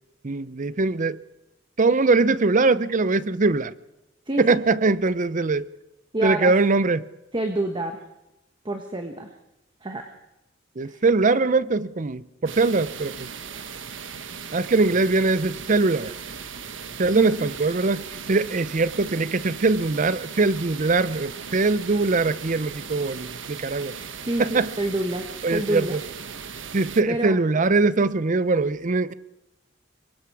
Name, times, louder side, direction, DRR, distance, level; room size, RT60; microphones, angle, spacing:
voice 1, 0.2-1.2 1.8-3.7 4.4-5.7 6.2-7.0 10.8-13.3 14.5-16.1 17.0-18.0 18.3-23.9 24.4-24.7 25.4-26.0 26.7-29.1, right 3 dB, 40° right, 0.6 m, -22 dB
voice 2, 6.1-6.5 7.3-8.0 8.6-9.3 9.8-10.1 10.8-11.0 17.1-17.5 24.2-26.0 27.1-27.4, right 1 dB, 25° right, 1.3 m, -27 dB
sound 1, 12.5-27.0, right 6 dB, 75° right, 1.3 m, -38 dB
26.0 x 23.0 x 4.8 m
head